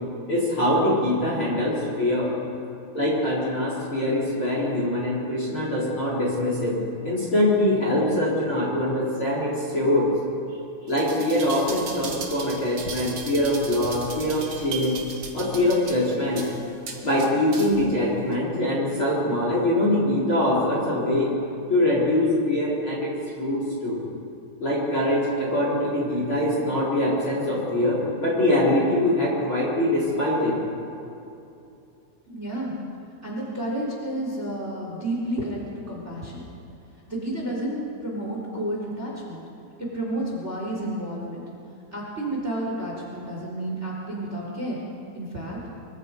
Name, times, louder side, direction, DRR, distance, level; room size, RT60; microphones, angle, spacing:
voice 1, 0.3-2.3 2.9-6.8 7.0-10.1 10.9-15.0 15.3-16.5 17.0-21.3 21.7-24.0 24.6-30.6, left 1 dB, 25° left, -4 dB, 4.0 m, -23 dB
sound 1, 10.9-17.9 18.3-18.4, right 4 dB, 45° right, 1.9 m, -37 dB
voice 2, 32.3-32.7 33.2-36.4 37.1-39.4 39.9-41.4 41.9-44.8 45.1-45.6, right 1 dB, 15° right, -3 dB, 3.7 m, -31 dB
24.5 x 23.5 x 5.3 m, 2.7 s
omnidirectional pair, 5.8 m